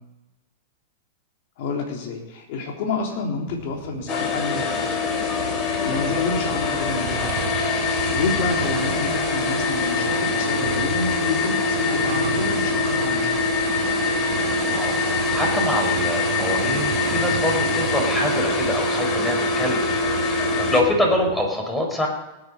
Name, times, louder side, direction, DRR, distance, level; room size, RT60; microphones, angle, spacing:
voice 1, 1.6-5.1 5.5-7.6 7.9-13.4, left 4 dB, 60° left, 0 dB, 3.7 m, -29 dB
sound 1, 3.5-21.5, right 9 dB, 70° right, 1.6 m, -34 dB
sound 2, 4.1-20.8, left 3 dB, 35° left, 2.8 m, -24 dB
voice 2, 14.7-22.1, left 1 dB, 10° left, 1 dB, 4.6 m, -25 dB
19.0 x 9.8 x 5.4 m, 1.1 s
hypercardioid pair, 130°, 0 cm